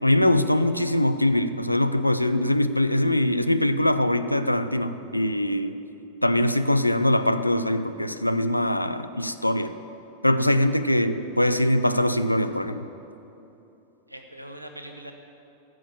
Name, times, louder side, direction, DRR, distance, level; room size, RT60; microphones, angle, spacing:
voice 1, 0.0-5.8 6.2-9.7 10.2-12.9, left 1 dB, 85° left, 10 dB, 0.5 m, -22 dB
voice 2, 14.1-15.1, right 1 dB, 85° right, 5 dB, 1.2 m, -42 dB
14.0 x 6.2 x 9.5 m, 3.0 s
figure-of-eight pair, 90°, 0 cm